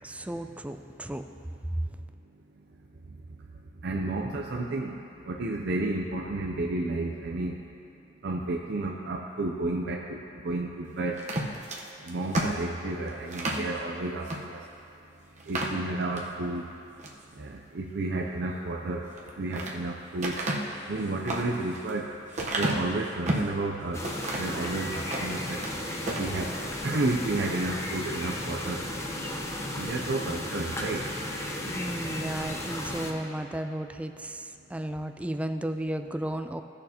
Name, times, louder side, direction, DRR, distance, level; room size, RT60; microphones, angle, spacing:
voice 1, 0.0-1.2 1.7-1.9 31.6-36.6, right 1 dB, 5° right, 7 dB, 0.3 m, -33 dB
voice 2, 3.8-7.6 8.2-11.2 12.1-14.6 15.5-16.7 17.4-19.1 19.4-20.4 20.9-22.1 22.6-24.0 24.4-25.6 26.2-26.5 26.8-28.8 29.8-31.0, right 2 dB, 65° right, -1 dB, 0.5 m, -31 dB
sound 1, 11.2-13.7 14.2-14.4 14.8-14.9 15.4-16.3 16.8-17.2 19.0-19.8 20.2-23.6 24.0-24.6 25.0-25.7 26.0-26.3, right 1 dB, 40° right, 1.0 m, -31 dB
sound 2, 23.9-33.1, left 1 dB, 15° left, 0.8 m, -34 dB
16.5 x 6.5 x 2.8 m, 2.7 s
head